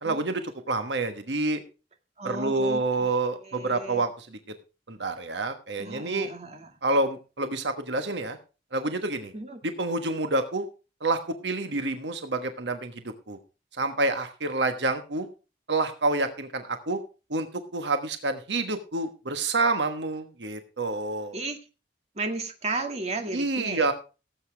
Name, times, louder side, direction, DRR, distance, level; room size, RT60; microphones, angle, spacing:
voice 1, 0.0-1.6 2.2-4.4 4.9-6.3 6.8-8.4 8.7-9.3 9.6-10.6 11.0-13.4 13.7-15.3 15.7-17.0 17.3-17.5 17.7-21.4 23.3-23.9, right 2 dB, 75° right, 8 dB, 1.4 m, -28 dB
voice 2, 2.2-3.1 3.4-4.0 5.8-6.7 9.3-9.6 21.3-21.6 22.2-23.9, right 3 dB, 40° right, 5 dB, 2.0 m, -34 dB
18.0 x 8.2 x 3.4 m, 0.31 s
head